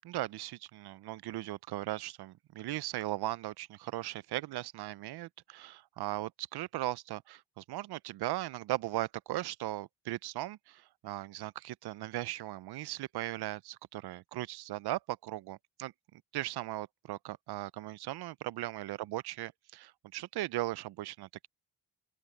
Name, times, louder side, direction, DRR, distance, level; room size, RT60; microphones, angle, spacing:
voice 1, 0.0-15.9 16.3-21.5, right 16 dB, 75° right, 0.6 m, -38 dB
open air
cardioid pair, 85°, 39 cm